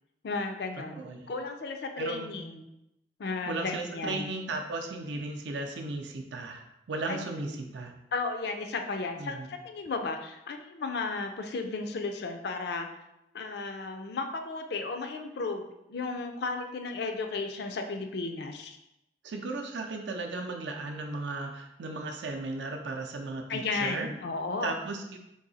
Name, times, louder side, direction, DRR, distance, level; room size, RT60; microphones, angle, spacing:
voice 1, 0.2-1.0 1.3-2.6 3.2-4.3 7.1-7.2 7.5-7.6 8.1-12.9 13.3-18.8 23.5-24.8, left 3 dB, 60° left, 6 dB, 0.4 m, -34 dB
voice 2, 0.8-1.3 2.0-2.3 3.5-7.9 9.2-9.5 19.2-24.1 24.6-25.2, right 3 dB, 75° right, 3 dB, 0.5 m, -36 dB
3.9 x 2.7 x 4.0 m, 0.87 s
head